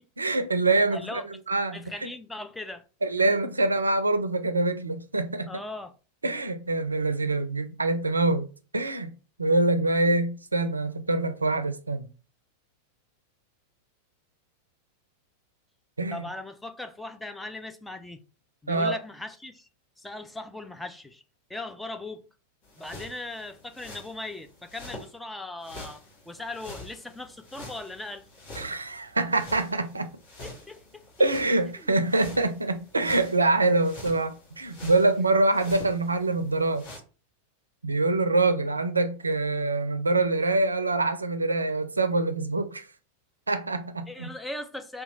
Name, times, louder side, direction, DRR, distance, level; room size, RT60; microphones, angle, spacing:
voice 1, 0.2-1.2 1.5-1.8 3.0-5.5 6.2-8.5 8.7-9.1 9.4-12.1 16.0-16.2 18.7-19.0 28.6-30.1 31.2-36.9 37.8-42.9 43.5-44.3, right 2 dB, 80° right, 0.4 m, -25 dB
voice 2, 0.9-1.3 1.7-2.8 3.2-3.4 5.5-5.9 16.1-18.2 18.6-19.7 20.0-21.2 21.5-22.3 22.8-28.3 30.4-31.0 31.8-31.9 44.1-45.0, left 2 dB, 5° left, 0.4 m, -39 dB
sound 1, 22.6-25.1 25.6-37.0, left 1 dB, 40° left, 1.3 m, -46 dB
2.9 x 2.3 x 3.9 m
figure-of-eight pair, 90°, 0 cm